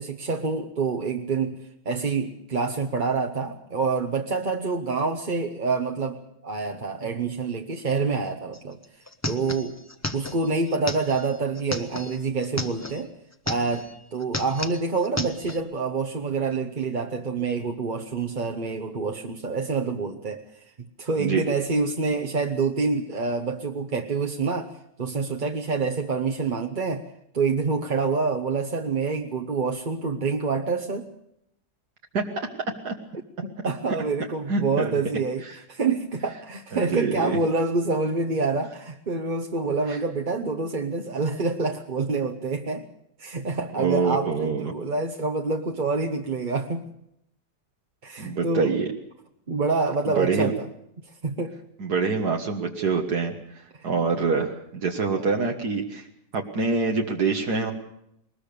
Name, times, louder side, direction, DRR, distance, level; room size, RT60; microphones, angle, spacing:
voice 1, 0.0-1.6 1.8-8.8 9.3-9.7 10.1-13.1 13.5-20.6 21.0-27.0 27.3-31.1 33.4-35.4 35.7-42.9 43.2-46.9 48.0-48.7 49.5-50.7 51.2-51.6 53.7-53.9 55.1-55.3, right 4 dB, 35° right, 3 dB, 1.1 m, -27 dB
sound 1, 8.5-8.6 8.8-13.0 13.3-13.9 14.2-15.6, left 1 dB, 10° left, 1.0 m, -33 dB
voice 2, 34.5-35.0 35.5-35.6 36.7-37.4 39.9-40.0 43.8-44.7 48.2-48.9 50.2-50.5 51.8-56.1 56.3-57.7, right 4 dB, 75° right, 2 dB, 2.1 m, -25 dB
21.5 x 20.0 x 6.7 m, 0.76 s
omnidirectional pair, 1.7 m